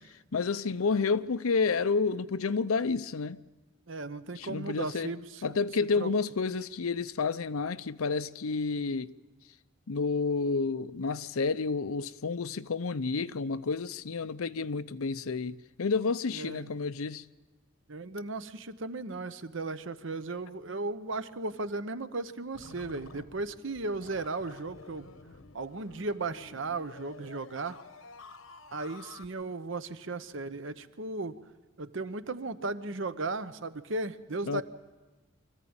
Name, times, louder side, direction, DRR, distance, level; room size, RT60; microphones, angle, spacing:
voice 1, 0.3-3.4 4.4-5.1 5.4-9.1 9.9-17.2 34.5-34.6, left 4 dB, 90° left, 0.6 m, -30 dB
voice 2, 3.9-5.5 6.0-6.1 16.3-16.6 17.9-25.1 25.5-27.8 28.7-31.4 31.8-34.6, right 3 dB, 60° right, 0.9 m, -36 dB
sound 1, 22.5-29.3, left 4 dB, 75° left, 1.1 m, -51 dB
25.0 x 14.5 x 8.8 m
head